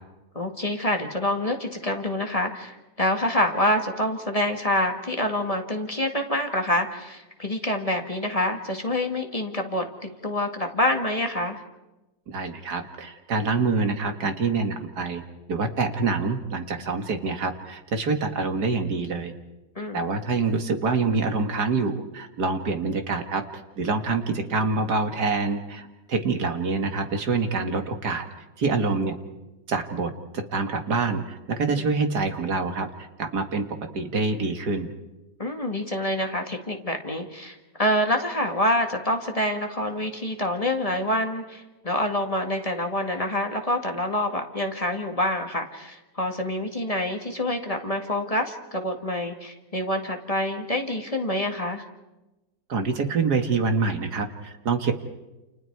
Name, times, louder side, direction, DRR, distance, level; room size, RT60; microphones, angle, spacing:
voice 1, 0.4-11.6 19.8-20.1 31.7-31.9 35.4-51.8, left 1 dB, 20° left, 4 dB, 1.9 m, -26 dB
voice 2, 12.3-15.2 15.5-19.3 19.9-28.2 28.6-29.2 29.7-33.6 33.9-34.9 52.7-54.9, right 4 dB, 65° right, 6 dB, 2.3 m, -26 dB
29.0 x 29.0 x 4.7 m, 1.0 s
omnidirectional pair, 1.9 m